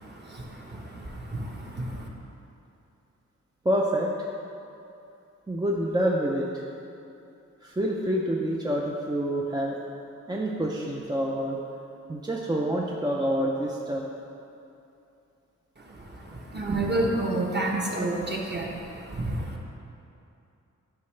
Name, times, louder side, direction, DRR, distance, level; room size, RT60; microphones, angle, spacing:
voice 1, 0.0-2.1 15.8-19.6, right 2 dB, 35° right, -2 dB, 1.1 m, -30 dB
voice 2, 3.6-4.1 5.5-6.5 7.6-9.8 10.3-11.6 12.1-14.1, equal, 15° right, -2 dB, 0.5 m, -27 dB
9.4 x 5.3 x 3.3 m, 2.7 s
wide cardioid pair, 85°, 30 cm